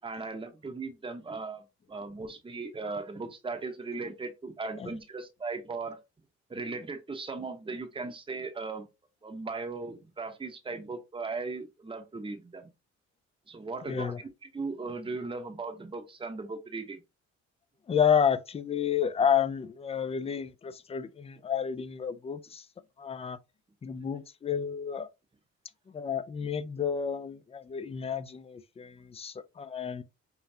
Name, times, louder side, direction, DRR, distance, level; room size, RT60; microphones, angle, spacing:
voice 1, 0.0-6.0 6.5-8.9 9.2-12.7 13.5-14.1 14.5-17.0, right 3 dB, 15° right, 0.8 m, -37 dB
voice 2, 13.9-14.2 17.9-22.7 23.0-23.4 23.8-25.1 25.9-30.0, left 7 dB, 20° left, 0.4 m, -30 dB
5.3 x 2.3 x 2.7 m
cardioid pair, 90°, 30 cm